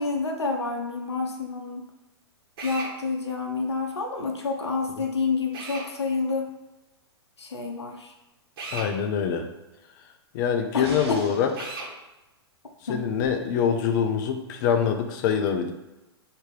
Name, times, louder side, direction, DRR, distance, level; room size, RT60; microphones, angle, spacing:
voice 1, 0.0-1.8 2.6-6.5 7.4-8.1 10.7-11.3 12.9-13.0 14.9-15.0, left 4 dB, 90° left, 2 dB, 0.7 m, -29 dB
Drill, 2.6-2.9 5.5-5.9 8.6-8.9 11.5-11.9, right 3 dB, 60° right, 1.3 m, -35 dB
voice 2, 8.7-9.5 10.3-11.7 12.9-15.7, left 7 dB, 45° left, 6 dB, 0.6 m, -25 dB
sound 1, 10.8-11.7 13.2-13.3, right 3 dB, 75° right, 1.0 m, -40 dB
3.4 x 2.9 x 4.7 m, 1.0 s
hypercardioid pair, 115°, 14 cm